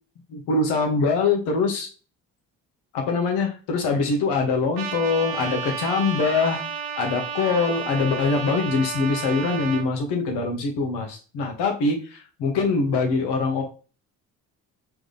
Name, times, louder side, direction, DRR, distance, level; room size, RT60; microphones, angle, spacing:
voice 1, 0.3-1.9 2.9-6.6 7.0-13.6, left 4 dB, 70° left, 3 dB, 1.3 m, -23 dB
Trumpet, 4.8-9.9, right 7 dB, 55° right, 0.9 m, -32 dB
3.8 x 3.4 x 3.3 m, 0.36 s
hypercardioid pair, 55°, 42 cm